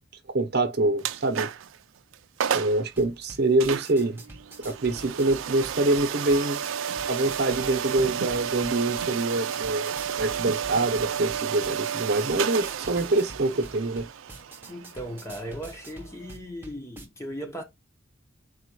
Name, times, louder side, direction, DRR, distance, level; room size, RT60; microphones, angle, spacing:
voice 1, 0.3-1.5 2.5-4.2 4.6-6.6 7.1-9.9 10.2-14.1, right 2 dB, 55° right, 0.9 m, -25 dB
sound 1, 1.0-1.8 2.1-2.2 2.4-2.8 3.6-16.3, right 8 dB, 85° right, 0.4 m, -32 dB
sound 2, 2.9-17.1, right 1 dB, 10° right, 0.9 m, -47 dB
voice 2, 14.7-17.6, equal, 15° left, 0.9 m, -37 dB
4.2 x 2.4 x 4.5 m
head